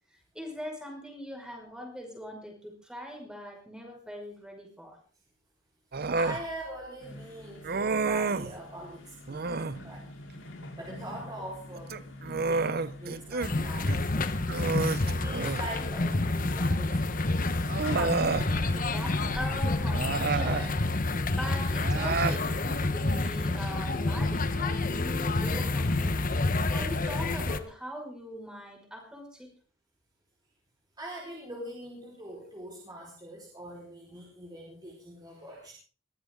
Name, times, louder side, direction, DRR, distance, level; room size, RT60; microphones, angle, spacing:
voice 1, 0.1-5.0 18.0-20.8 21.3-29.5, equal, 5° right, 2 dB, 5.5 m, -41 dB
Human voice, 5.9-6.4 7.6-8.5 9.3-9.8 11.7-13.5 13.9-14.0 14.5-15.7 16.9-17.0 17.7-18.5 19.9-20.7 21.8-22.4, right 4 dB, 50° right, 0.7 m, -30 dB
voice 2, 6.2-10.0 10.7-12.0 12.5-12.7 13.0-14.3 15.0-17.0 17.8-18.2 31.0-35.7, right 1 dB, 20° right, -3 dB, 4.8 m, -42 dB
sound 1, 7.0-26.1, left 1 dB, 75° left, 5.0 m, -45 dB
sound 2, 13.4-27.6, left 2 dB, 45° left, 1.2 m, -29 dB
22.5 x 15.5 x 3.8 m, 0.40 s
head